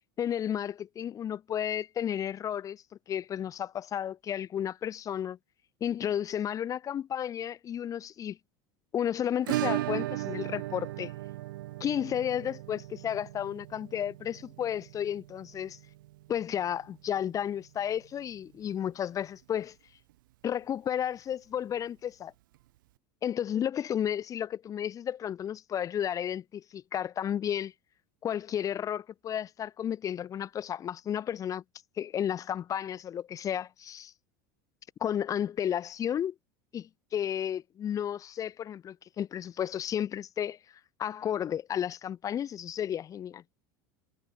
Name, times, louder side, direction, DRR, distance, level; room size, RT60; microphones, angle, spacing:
voice 1, 0.2-2.8 3.1-5.4 5.8-8.4 8.9-11.1 11.8-15.8 16.3-19.7 20.4-22.3 23.2-27.7 28.2-31.6 32.0-34.1 35.0-36.3 36.7-40.6 41.0-43.4, left 9 dB, 30° left, 1.6 m, -32 dB
Acoustic guitar / Strum, 9.5-18.1 18.3-18.4 18.7-18.8 19.2-19.3 21.3-21.4 22.5-22.6, right 17 dB, 85° right, 3.4 m, -37 dB
supercardioid pair, 125°, 11 cm